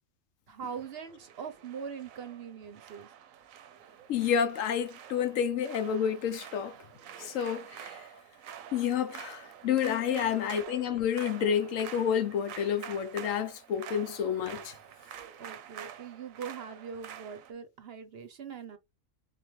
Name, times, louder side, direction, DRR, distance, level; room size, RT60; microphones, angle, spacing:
voice 1, 0.5-3.1 10.1-10.4 15.4-18.8, right 6 dB, 55° right, 0.8 m, -42 dB
sound 1, 0.6-17.5, right 9 dB, 85° right, 1.0 m, -47 dB
voice 2, 4.1-6.7 7.2-8.0 8.7-14.7, left 8 dB, 75° left, 1.0 m, -29 dB
3.7 x 3.5 x 3.1 m
omnidirectional pair, 1.4 m